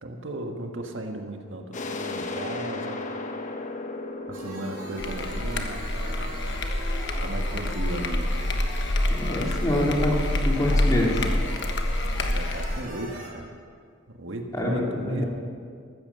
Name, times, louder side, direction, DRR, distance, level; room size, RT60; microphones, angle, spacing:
voice 1, 0.0-3.0 4.3-6.3 7.2-8.3 12.1-13.5 14.2-15.2, right 1 dB, 75° right, 4 dB, 1.5 m, -36 dB
sound 1, 1.7-7.2, left 2 dB, 40° left, 1.1 m, -36 dB
sound 2, 4.3-13.3, right 1 dB, 45° right, 5.2 m, -40 dB
sound 3, 5.0-12.8, left 1 dB, 65° left, 1.3 m, -27 dB
voice 2, 9.1-10.2 10.5-11.2 14.5-15.3, left 1 dB, 20° left, -2 dB, 2.6 m, -25 dB
14.5 x 13.5 x 6.8 m, 2.2 s
head